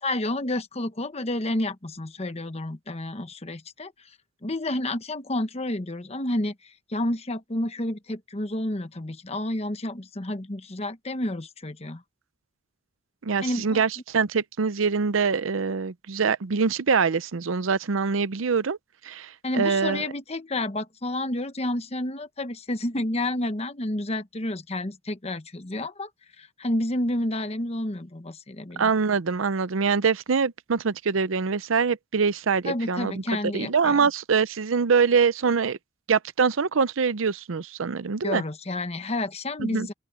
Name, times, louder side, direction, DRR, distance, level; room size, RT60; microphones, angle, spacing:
voice 1, 0.0-3.9 4.4-6.5 6.9-12.0 13.4-13.8 19.4-26.1 26.4-28.9 32.6-34.1 38.2-39.9, left 1 dB, 30° left, 1.1 m, -30 dB
voice 2, 13.2-18.8 19.0-20.1 28.8-33.2 33.5-35.8 36.1-38.4 39.6-39.9, right 5 dB, 85° right, 0.6 m, -24 dB
open air
head